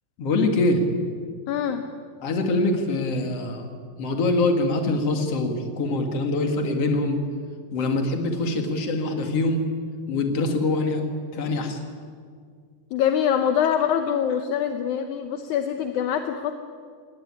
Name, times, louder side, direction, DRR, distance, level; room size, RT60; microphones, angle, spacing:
voice 1, 0.2-0.8 2.2-3.6 4.0-7.2 7.7-9.7 10.1-11.0 11.3-11.8, left 2 dB, 45° left, 4 dB, 2.7 m, -24 dB
voice 2, 1.5-1.8 12.9-16.5, left 8 dB, 70° left, 7 dB, 2.0 m, -24 dB
19.5 x 18.0 x 9.8 m, 2.1 s
omnidirectional pair, 4.2 m